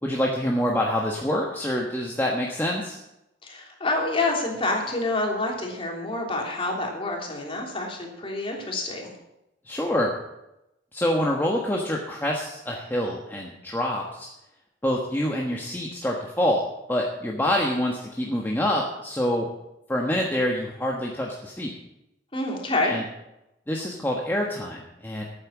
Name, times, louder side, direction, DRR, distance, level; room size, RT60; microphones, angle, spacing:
voice 1, 0.0-3.0 9.7-10.1 10.9-14.3 14.8-16.6 16.9-19.5 19.9-21.7 22.8-23.0 23.7-25.2, left 1 dB, 10° left, -2 dB, 1.3 m, -26 dB
voice 2, 3.4-9.1 22.3-22.9, left 2 dB, 30° left, 0 dB, 3.1 m, -27 dB
13.0 x 8.9 x 7.3 m, 0.89 s
head